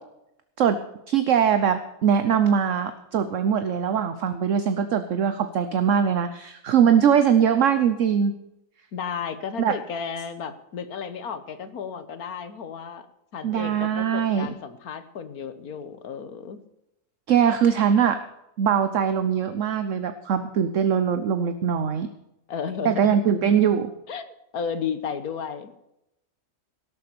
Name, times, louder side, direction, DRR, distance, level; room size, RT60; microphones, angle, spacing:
voice 1, 1.1-8.3 9.6-9.7 13.4-14.5 17.3-18.2 18.6-22.1 22.8-23.9, right 8 dB, 60° right, 10 dB, 1.1 m, -21 dB
voice 2, 8.9-13.1 13.3-16.6 22.5-23.2 24.1-25.8, left 6 dB, 70° left, 11 dB, 1.6 m, -33 dB
17.5 x 7.4 x 6.9 m, 0.85 s
omnidirectional pair, 1.6 m